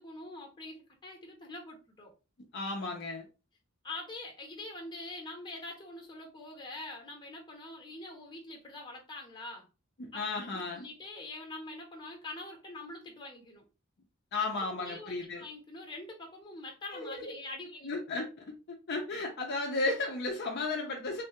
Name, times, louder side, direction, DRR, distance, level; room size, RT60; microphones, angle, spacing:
voice 1, 0.0-2.1 3.8-9.7 10.1-13.7 14.4-17.9, left 2 dB, 20° left, 0.8 m, -44 dB
voice 2, 2.5-3.2 10.0-10.9 14.3-15.4 16.9-17.3 17.8-21.2, left 3 dB, 50° left, 0.5 m, -34 dB
3.2 x 2.3 x 2.8 m
head